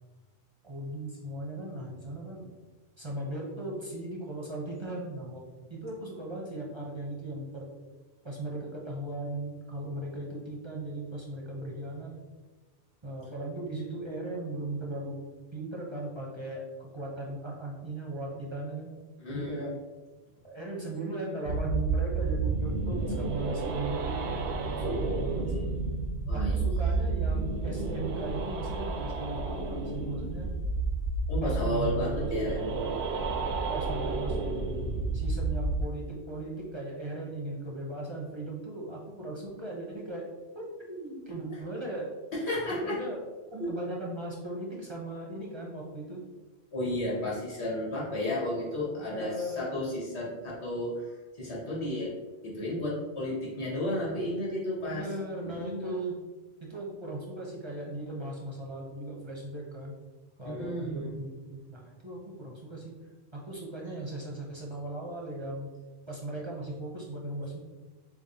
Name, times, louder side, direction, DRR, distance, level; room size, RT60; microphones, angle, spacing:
voice 1, 0.6-2.5 3.0-5.4 5.7-7.7 8.2-12.1 13.0-15.2 15.5-18.9 19.3-19.7 20.4-24.4 24.7-25.7 26.3-30.5 31.4-32.3 33.4-34.5 35.1-40.2 40.5-42.1 42.7-43.2 43.5-46.2 49.0-49.7 54.8-56.2 56.6-60.0 60.4-62.9 63.3-65.7 66.1-67.6, right 2 dB, 30° right, -3 dB, 0.7 m, -38 dB
voice 2, 19.2-19.7 24.8-25.2 26.3-26.6 31.3-32.6 42.3-43.0 43.6-43.7 46.7-52.1 52.4-55.1 55.4-55.9 60.4-61.2, left 1 dB, 85° left, -5 dB, 1.7 m, -33 dB
sound 1, 21.5-35.8, right 3 dB, 75° right, 0.8 m, -31 dB
7.0 x 2.4 x 2.8 m, 1.2 s
omnidirectional pair, 1.1 m